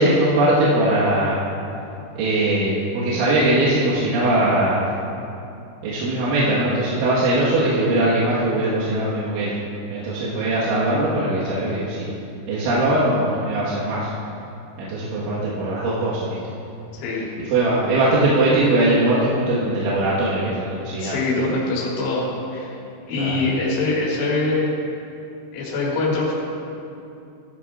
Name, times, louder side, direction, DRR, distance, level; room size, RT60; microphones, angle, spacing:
voice 1, 0.0-1.4 2.2-4.8 5.8-9.5 9.9-12.1 12.5-14.1 14.8-16.4 17.5-21.2 23.2-23.4, right 1 dB, 90° right, -9 dB, 3.9 m, -20 dB
voice 2, 16.9-17.3 21.0-22.8 23.1-24.7 25.5-26.3, left 2 dB, 70° left, -5 dB, 4.1 m, -23 dB
16.5 x 12.5 x 2.5 m, 2.7 s
omnidirectional pair, 5.3 m